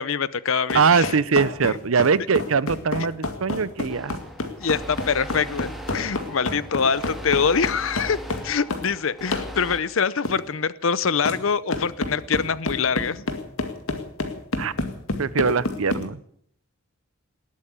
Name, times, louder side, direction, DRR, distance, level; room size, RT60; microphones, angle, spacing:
voice 1, 0.0-1.1 4.6-8.2 8.4-13.2, left 6 dB, 65° left, 18 dB, 0.7 m, -24 dB
sound 1, 0.7-8.9 9.3-9.5 10.2-10.4 11.2-11.4 11.7-16.0, left 2 dB, 85° left, 2.1 m, -29 dB
voice 2, 0.7-4.2 14.6-14.7 15.2-16.2, right 5 dB, 80° right, 18 dB, 0.7 m, -22 dB
sound 2, 3.9-9.8, equal, ahead, 1.9 m, -39 dB
19.5 x 8.7 x 8.4 m, 0.67 s
head